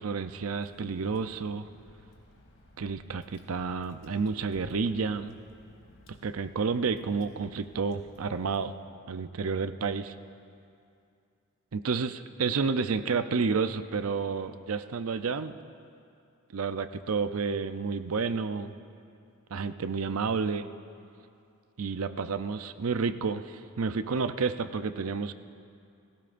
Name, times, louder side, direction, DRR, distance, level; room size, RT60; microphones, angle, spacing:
voice 1, 0.0-1.7 2.8-5.3 6.2-8.7 9.1-10.1 11.7-15.5 16.5-18.7 19.5-20.7 21.8-25.3, right 5 dB, 75° right, 11 dB, 0.6 m, -30 dB
Water / Drip, 0.6-8.6, equal, 65° left, 2.4 m, -56 dB
29.5 x 16.0 x 2.6 m, 2.5 s
head